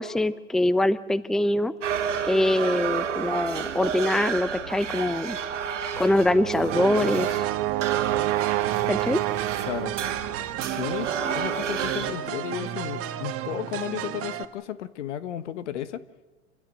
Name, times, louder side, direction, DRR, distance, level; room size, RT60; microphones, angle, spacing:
voice 1, 0.0-1.7 2.3-5.4 6.0-7.4 8.9-9.2, left 1 dB, ahead, 16 dB, 0.7 m, -23 dB
sound 1, 1.8-12.1, right 7 dB, 85° right, 1.9 m, -31 dB
Brass instrument, 5.9-10.2, right 18 dB, 55° right, 1.1 m, -29 dB
sound 2, 6.7-14.5, right 12 dB, 40° right, 1.7 m, -33 dB
voice 2, 9.6-9.9 10.7-16.0, left 11 dB, 75° left, 14 dB, 1.4 m, -33 dB
28.0 x 16.5 x 7.8 m, 1.2 s
hypercardioid pair, 100°, 36 cm